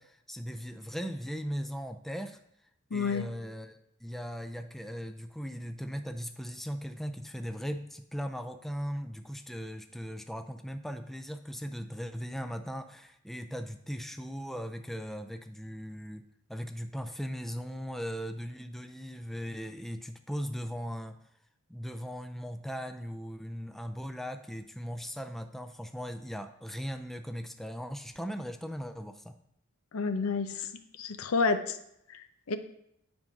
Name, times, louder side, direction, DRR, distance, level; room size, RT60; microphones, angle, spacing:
voice 1, 0.0-2.4 2.9-16.2 16.5-21.2 21.7-29.4, equal, ahead, 7 dB, 0.3 m, -38 dB
voice 2, 2.9-3.2 29.9-30.7 31.0-31.8 32.1-32.6, left 4 dB, 90° left, 9 dB, 0.7 m, -30 dB
9.9 x 3.7 x 5.3 m, 0.77 s
head